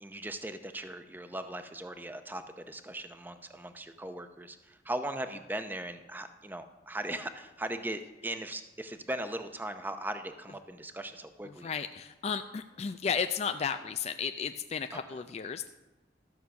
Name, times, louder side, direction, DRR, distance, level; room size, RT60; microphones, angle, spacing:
voice 1, 0.0-11.7 14.9-15.0, right 1 dB, 10° right, 8 dB, 0.6 m, -39 dB
voice 2, 11.4-15.7, left 6 dB, 35° left, 8 dB, 0.3 m, -34 dB
13.0 x 6.3 x 6.9 m, 1.1 s
head